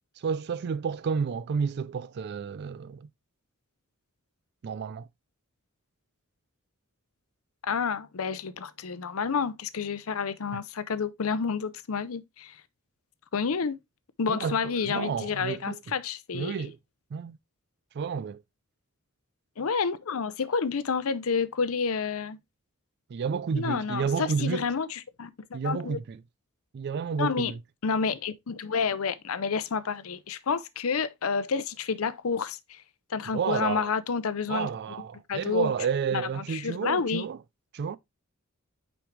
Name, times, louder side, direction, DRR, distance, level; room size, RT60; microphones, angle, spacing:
voice 1, 0.2-3.1 4.6-5.1 10.5-10.6 14.3-15.9 16.3-16.8 17.1-17.4 17.9-18.4 23.1-24.7 25.5-26.2 26.7-27.6 33.3-33.9 34.5-37.4 37.7-38.0, right 6 dB, 50° right, 0.3 m, -31 dB
voice 2, 7.6-12.6 13.3-13.8 14.2-16.5 19.6-22.4 23.5-26.0 27.2-27.5 27.8-32.8 33.1-34.7 35.3-35.7 36.1-37.3, left 5 dB, 70° left, 0.6 m, -29 dB
5.9 x 5.3 x 3.2 m
head